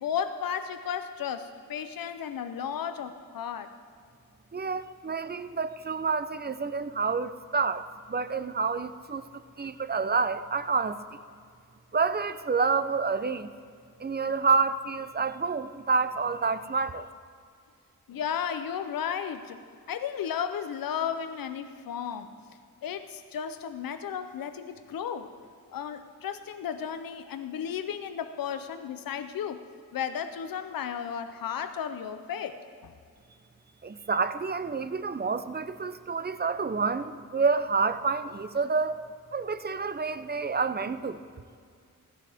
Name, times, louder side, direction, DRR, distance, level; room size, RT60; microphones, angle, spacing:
voice 1, 0.0-3.7 18.1-19.6 19.9-22.3 22.8-25.3 25.7-29.6 29.9-32.9, left 8 dB, 80° left, 9 dB, 0.7 m, -34 dB
voice 2, 4.5-9.2 9.6-11.0 11.9-13.5 14.0-17.1 33.8-39.0 39.3-41.2, right 4 dB, 30° right, 12 dB, 0.6 m, -28 dB
16.0 x 11.5 x 3.5 m, 2.2 s
cardioid pair, 65°, 34 cm